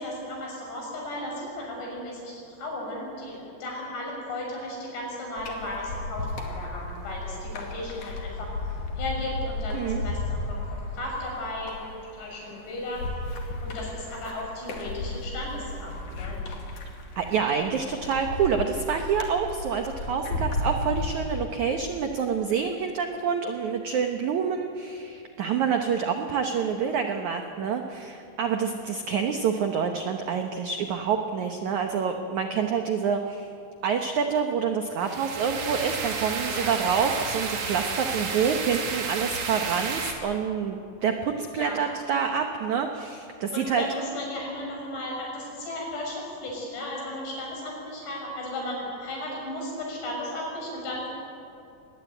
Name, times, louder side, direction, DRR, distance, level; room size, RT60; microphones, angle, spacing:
voice 1, 0.0-8.5 9.0-11.9 12.1-13.1 13.6-16.4 28.6-28.9 36.5-36.8 41.5-41.8 43.5-51.1, left 1 dB, 70° left, -1 dB, 8.5 m, -35 dB
sound 1, 5.4-21.1, left 2 dB, 50° left, 3.5 m, -34 dB
voice 2, 17.2-33.5 33.8-43.8, right 6 dB, 75° right, 5 dB, 1.7 m, -27 dB
sound 2, 35.0-40.1, right 5 dB, 45° right, 2.7 m, -31 dB
23.5 x 20.0 x 9.1 m, 2.6 s
omnidirectional pair, 5.1 m